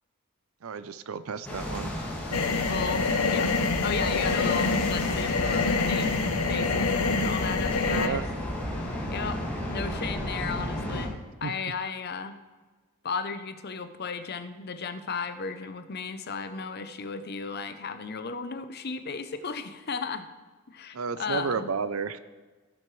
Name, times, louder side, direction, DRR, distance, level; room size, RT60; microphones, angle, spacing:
voice 1, 0.6-1.9 2.3-2.4 7.9-8.2 11.4-11.5 20.9-22.2, right 5 dB, 75° right, 13 dB, 0.5 m, -32 dB
sound 1, 1.4-11.1, equal, 10° left, 2.0 m, -33 dB
sound 2, 2.3-8.1, left 4 dB, 85° left, 0.7 m, -26 dB
voice 2, 2.7-3.1 3.3-3.5 3.8-8.2 9.1-11.1 11.4-12.4 13.0-20.3 20.7-21.7, left 5 dB, 50° left, 10 dB, 0.7 m, -35 dB
16.0 x 7.7 x 3.2 m, 1.3 s
head